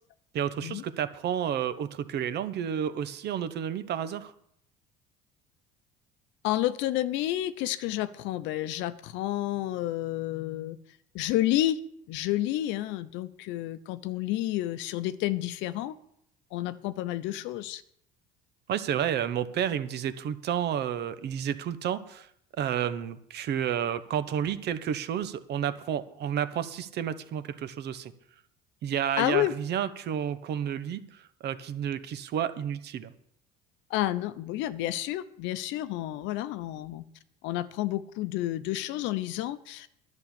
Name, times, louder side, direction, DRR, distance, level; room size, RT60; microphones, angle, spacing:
voice 1, 0.3-4.3 18.7-22.3 22.6-28.1 28.8-33.1, right 9 dB, 55° right, 12 dB, 1.1 m, -31 dB
voice 2, 6.4-10.8 11.1-11.8 12.1-15.9 16.5-17.8 29.2-29.5 33.9-37.0 37.4-39.9, left 14 dB, 70° left, 14 dB, 0.8 m, -30 dB
11.0 x 6.4 x 8.8 m, 0.71 s
supercardioid pair, 80°, 20 cm